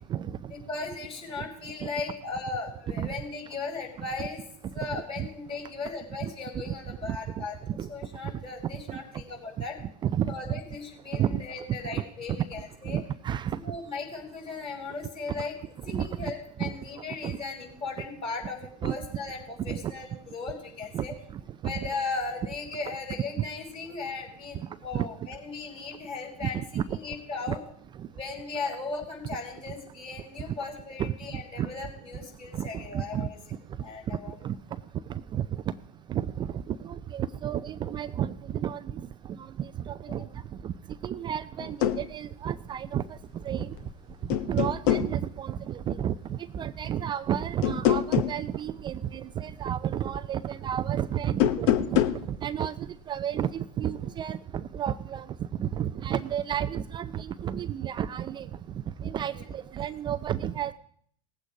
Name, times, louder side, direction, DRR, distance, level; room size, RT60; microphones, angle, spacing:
voice 1, 0.7-4.4 4.7-7.5 7.9-9.8 10.3-13.0 13.6-21.1 21.6-27.6 28.1-33.4 33.8-34.4 59.3-59.4, left 4 dB, 25° left, 1 dB, 6.1 m, -37 dB
voice 2, 4.9-5.3 6.2-6.3 6.7-7.4 7.8-7.9 8.9-9.0 10.0-10.3 11.1-11.4 11.9-12.0 12.9-13.6 15.9-16.1 16.6-16.7 17.2-17.4 18.8-18.9 19.7-19.9 20.9-21.0 21.6-21.7 23.4-23.5 24.9-25.1 26.4-27.0 27.5-27.6 28.0-28.1 31.0-31.7 32.5-33.3 34.4-34.5 35.1-35.4 36.1-39.1 39.4-40.3 40.6-40.7 41.0-43.0 43.4-43.7 44.5-52.0 52.3-55.3 55.6-58.5 59.0-60.7, right 10 dB, 20° right, 13 dB, 0.4 m, -31 dB
sound 1, 41.6-42.0 43.6-43.9 44.3-45.1 47.6-48.4 51.3-52.2, left 11 dB, 50° left, 1.0 m, -24 dB
19.0 x 8.1 x 5.0 m, 0.64 s
hypercardioid pair, 95°, 21 cm